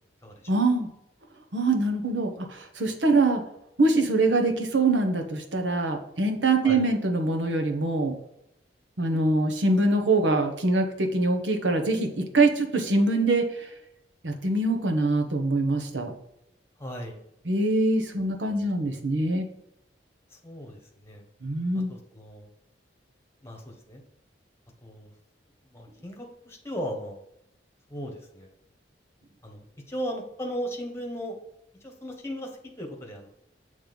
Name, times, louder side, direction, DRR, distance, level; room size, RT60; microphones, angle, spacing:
voice 1, 0.5-0.9 1.5-3.4 3.8-8.2 9.0-13.7 14.2-16.1 17.5-19.5 21.4-21.9, right 2 dB, 85° right, 4 dB, 1.1 m, -24 dB
voice 2, 16.8-17.2 20.3-21.2 21.7-22.5 23.4-24.0 24.8-25.1 25.7-27.2 27.9-28.5 29.4-31.4 31.8-33.3, equal, 15° left, 1 dB, 1.2 m, -37 dB
7.4 x 3.3 x 5.2 m, 0.78 s
head